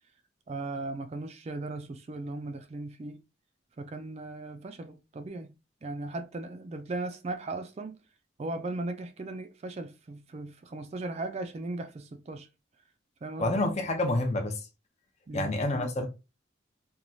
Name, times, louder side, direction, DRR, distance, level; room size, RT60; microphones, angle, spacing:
voice 1, 0.5-3.2 3.8-5.5 5.8-8.0 8.4-12.5 13.2-13.7 15.3-15.5, right 2 dB, 35° right, 0.3 m, -37 dB
voice 2, 13.4-14.6 15.3-16.1, left 2 dB, 35° left, 0.5 m, -28 dB
3.0 x 2.3 x 2.6 m
head